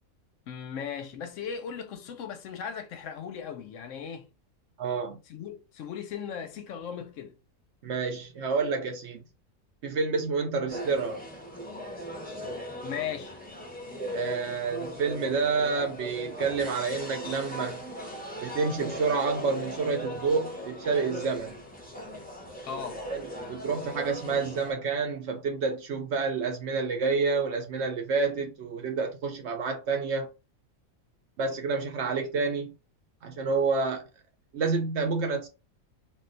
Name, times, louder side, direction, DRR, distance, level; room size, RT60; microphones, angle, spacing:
voice 1, 0.5-4.3 5.3-7.3 12.8-13.3 22.6-23.0, left 7 dB, 70° left, 0.9 m, -37 dB
voice 2, 4.8-5.2 7.8-9.2 9.8-11.2 14.1-17.8 18.4-21.6 23.1-23.2 23.5-30.3 31.4-32.7 33.2-34.0 34.5-35.5, right 4 dB, 65° right, 0.8 m, -29 dB
sound 1, 10.7-24.7, equal, 10° left, 0.5 m, -38 dB
2.5 x 2.2 x 3.8 m
omnidirectional pair, 1.5 m